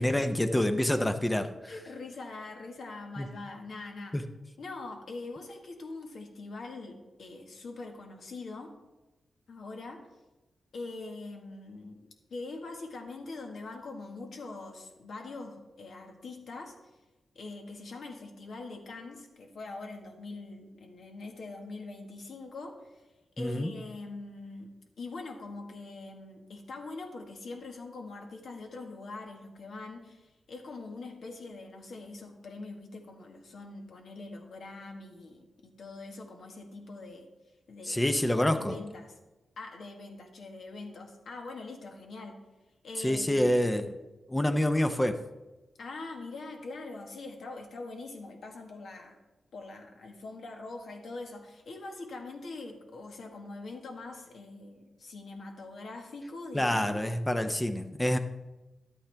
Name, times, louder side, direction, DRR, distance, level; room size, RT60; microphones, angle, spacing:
voice 1, 0.0-1.7 3.2-3.3 4.1-4.2 23.4-23.7 37.9-38.8 43.0-43.9 44.3-45.2 56.5-58.2, left 1 dB, 15° left, 8 dB, 0.6 m, -27 dB
voice 2, 1.7-4.2 4.6-8.7 9.5-10.1 10.7-12.0 12.3-17.0 17.3-23.1 23.4-37.3 37.7-38.0 38.5-39.2 39.6-42.4 42.8-43.7 45.8-49.2 49.5-57.0, left 3 dB, 70° left, 3 dB, 1.5 m, -43 dB
11.5 x 8.5 x 3.4 m, 1.1 s
cardioid pair, 90°, 0 cm